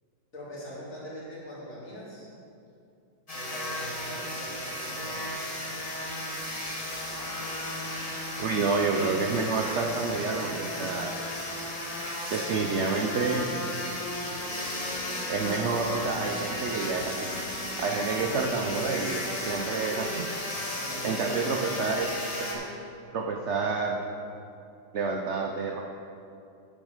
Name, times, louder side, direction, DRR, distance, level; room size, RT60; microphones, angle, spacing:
voice 1, 0.3-2.3 3.3-5.5 20.7-21.8, equal, 45° left, -7 dB, 2.8 m, -42 dB
sound 1, 3.3-22.5, left 1 dB, 20° left, 1.2 m, -34 dB
voice 2, 8.4-11.1 12.3-13.4 15.3-17.3 17.8-19.2 19.5-20.2 21.0-22.1 22.4-22.7 23.1-24.0 24.9-25.8, right 4 dB, 75° right, 1 dB, 0.6 m, -29 dB
sound 2, 14.2-20.7, right 2 dB, 35° right, 0.8 m, -45 dB
8.8 x 7.3 x 5.0 m, 2.6 s
omnidirectional pair, 2.0 m